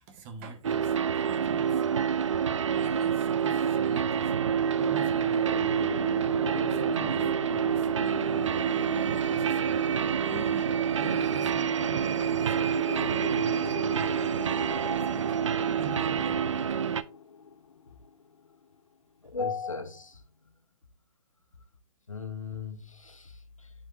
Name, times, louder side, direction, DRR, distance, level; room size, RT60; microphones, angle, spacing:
voice 1, 0.0-2.0 2.7-4.4 4.8-6.1 6.5-8.7 9.1-14.3 15.1-15.5 15.8-16.8, right 4 dB, 30° right, 1.2 m, -45 dB
sound 1, 0.6-17.0, right 7 dB, 70° right, 0.5 m, -27 dB
sound 2, 4.0-18.5, left 5 dB, 70° left, 0.6 m, -41 dB
voice 2, 19.2-20.2 22.1-23.7, left 5 dB, 90° left, 1.1 m, -36 dB
11.0 x 4.6 x 2.6 m
figure-of-eight pair, 130°, 16 cm